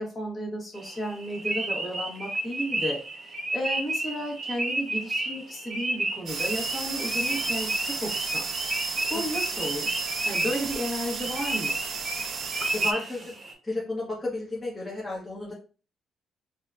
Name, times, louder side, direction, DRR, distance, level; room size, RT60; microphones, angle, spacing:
voice 1, 0.0-8.5 9.1-11.8, equal, 30° left, -3 dB, 1.4 m, -33 dB
sound 1, 0.7-13.5, right 1 dB, 35° right, 1.0 m, -32 dB
sound 2, 6.3-12.9, right 5 dB, 65° right, 0.6 m, -33 dB
voice 2, 12.7-13.4 13.6-15.5, left 2 dB, 10° left, -6 dB, 1.1 m, -32 dB
4.1 x 2.2 x 2.5 m, 0.36 s
cardioid pair, 90°, 0 cm